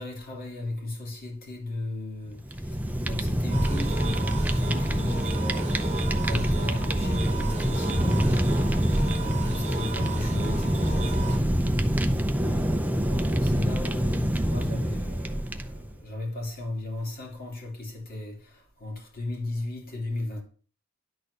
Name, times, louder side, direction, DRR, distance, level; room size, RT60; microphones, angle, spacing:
voice 1, 0.0-11.6 12.4-20.4, left 2 dB, 45° left, 2.8 m, -36 dB
Fire, 2.4-15.9, equal, 5° right, 0.6 m, -26 dB
sound 1, 3.5-11.4, right 5 dB, 30° right, 1.0 m, -37 dB
11.0 x 4.3 x 6.6 m
head